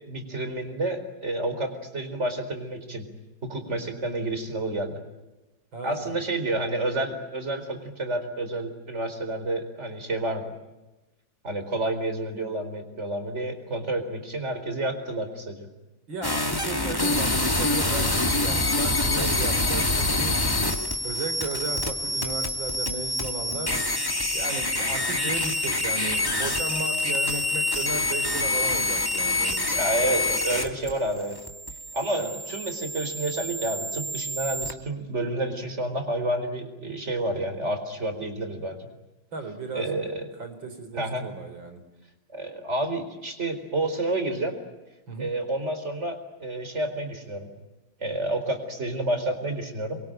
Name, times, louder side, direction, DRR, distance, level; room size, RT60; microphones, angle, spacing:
voice 1, 0.1-3.1 3.4-5.0 5.8-10.5 11.4-15.7 29.8-31.4 31.9-38.9 39.7-40.3 40.9-41.2 42.3-44.6 45.2-47.5 48.0-50.0, right 1 dB, 35° right, 7 dB, 4.6 m, -29 dB
voice 2, 3.6-4.1 5.7-6.2 16.1-20.4 21.0-23.8 24.3-29.8 32.2-32.3 39.3-39.9 40.4-41.8 45.1-45.3, right 3 dB, 75° right, 7 dB, 4.8 m, -35 dB
sound 1, 16.2-34.7, left 2 dB, 10° left, 2.1 m, -26 dB
28.0 x 23.5 x 9.1 m, 1.0 s
omnidirectional pair, 2.1 m